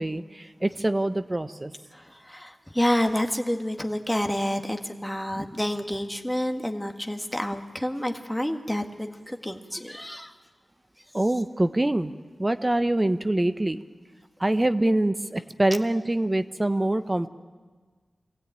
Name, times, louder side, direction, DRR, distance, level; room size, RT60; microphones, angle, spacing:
voice 1, 0.0-1.7 11.1-12.1 12.4-13.8 14.4-17.3, right 1 dB, 20° right, 10 dB, 0.8 m, -24 dB
voice 2, 1.9-10.3, left 1 dB, 5° left, 4 dB, 1.6 m, -29 dB
23.5 x 16.0 x 8.9 m, 1.4 s
wide cardioid pair, 70°, 0 cm